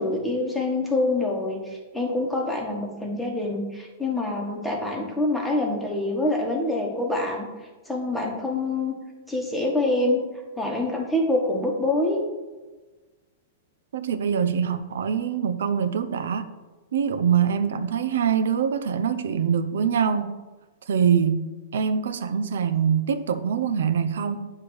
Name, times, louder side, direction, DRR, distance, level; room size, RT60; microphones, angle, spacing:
voice 1, 0.0-7.5 7.9-8.9 9.3-10.2 10.6-12.2, left 2 dB, 5° left, 1.2 m, -25 dB
voice 2, 13.9-16.5 16.9-20.3 20.9-21.5 21.7-24.4, right 7 dB, 85° right, 0.6 m, -24 dB
9.1 x 3.2 x 6.2 m
supercardioid pair, 165°, 0 cm